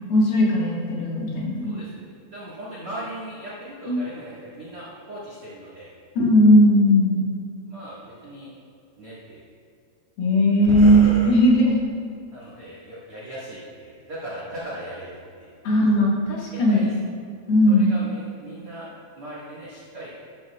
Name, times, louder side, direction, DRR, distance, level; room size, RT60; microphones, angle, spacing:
voice 1, 0.1-1.8 3.9-4.0 6.2-7.2 10.2-11.9 15.6-16.9 17.5-18.0, equal, 60° left, -5 dB, 3.3 m, -18 dB
voice 2, 1.6-2.1 2.3-5.9 7.7-8.5 9.0-9.5 10.6-11.4 12.3-15.5 16.7-16.9 17.7-20.1, right 1 dB, 60° right, -7 dB, 1.4 m, -36 dB
13.0 x 12.0 x 2.4 m, 2.4 s
omnidirectional pair, 5.4 m